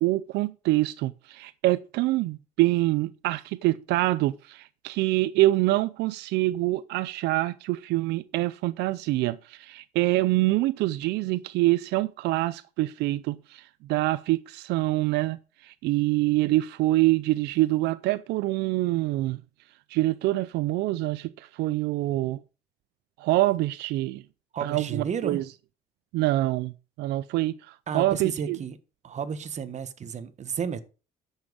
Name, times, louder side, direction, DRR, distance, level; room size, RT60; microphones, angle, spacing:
voice 1, 0.0-19.4 19.9-22.4 23.2-24.2 24.6-25.4 26.1-26.7 27.0-28.6, right 18 dB, 85° right, 0.5 m, -25 dB
voice 2, 24.5-25.4 27.9-28.8 29.0-30.8, right 7 dB, 45° right, 1.4 m, -32 dB
10.5 x 7.3 x 5.1 m
cardioid pair, 110°, 17 cm